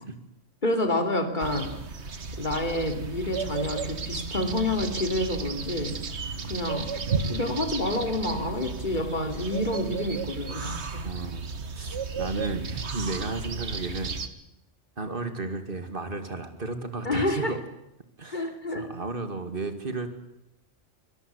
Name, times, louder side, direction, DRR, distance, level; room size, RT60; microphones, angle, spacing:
voice 1, 0.6-1.8 2.4-6.0 6.4-6.9 7.3-11.1 17.0-17.6 18.3-18.9, left 1 dB, 35° left, 5 dB, 3.1 m, -28 dB
sound 1, 1.4-14.3, right 4 dB, 60° right, 1.7 m, -34 dB
voice 2, 11.0-11.5 11.8-14.1 15.0-17.6 18.2-20.1, right 3 dB, 45° right, 8 dB, 2.5 m, -33 dB
25.0 x 18.0 x 8.4 m, 0.85 s
omnidirectional pair, 1.3 m